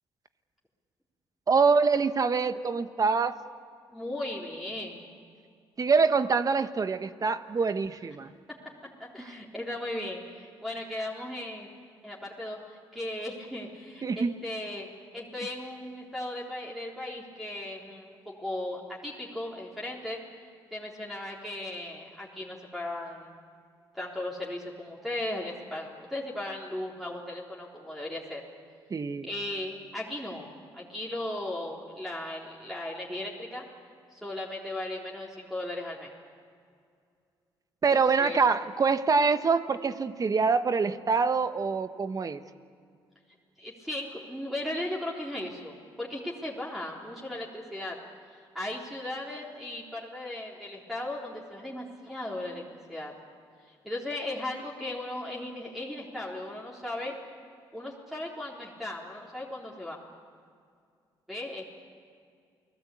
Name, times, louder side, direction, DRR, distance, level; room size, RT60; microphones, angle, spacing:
voice 1, 1.5-3.4 5.8-8.3 14.0-14.3 28.9-29.3 37.8-42.4, right 5 dB, 40° right, 10 dB, 1.3 m, -25 dB
voice 2, 3.9-5.1 9.0-11.7 12.0-14.9 15.1-20.2 20.7-23.3 23.9-28.4 29.2-33.6 34.1-36.1 37.9-38.4 43.6-48.0 48.5-53.1 53.7-57.1 57.7-60.0 61.3-61.6, left 1 dB, ahead, -3 dB, 3.8 m, -37 dB
29.5 x 19.0 x 8.5 m, 2.3 s
cardioid pair, 80°, 9 cm